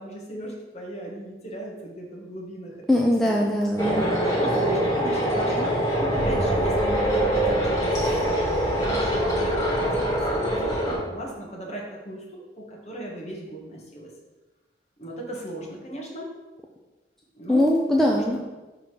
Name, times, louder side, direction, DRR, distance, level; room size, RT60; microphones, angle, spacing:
voice 1, 0.0-3.5 4.0-8.0 8.2-9.8 10.1-14.1 15.0-16.3 17.3-17.7 18.1-18.4, right 1 dB, 40° left, -2 dB, 1.5 m, -37 dB
voice 2, 2.9-4.1 17.5-18.4, left 1 dB, ahead, -2 dB, 0.4 m, -21 dB
sound 1, 3.8-11.0, right 1 dB, 20° left, 1.8 m, -23 dB
5.5 x 3.7 x 5.9 m, 1.1 s
head